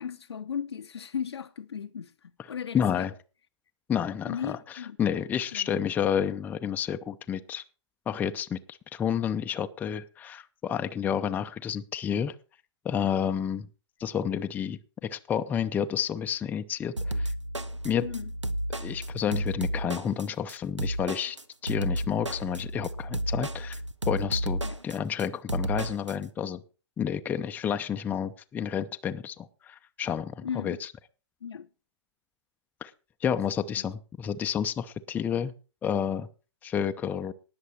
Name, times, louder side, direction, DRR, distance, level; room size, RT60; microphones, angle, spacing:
voice 1, 0.0-3.1 4.2-5.0 5.5-5.8 18.0-18.3 24.6-24.8 30.4-30.8 31.4-31.7 33.8-33.9, left 7 dB, 65° left, 0.7 m, -36 dB
voice 2, 2.7-3.1 3.9-4.6 5.0-7.6 8.1-12.3 12.8-13.7 14.0-17.3 17.8-18.0 18.8-21.4 21.6-23.8 24.1-26.6 27.0-30.8 32.8-32.9 33.2-35.5 35.8-36.3 36.6-37.3, left 8 dB, 10° left, 0.6 m, -30 dB
sound 1, 17.0-26.1, right 1 dB, 85° right, 1.0 m, -32 dB
19.0 x 6.8 x 4.2 m
figure-of-eight pair, 115°, 15 cm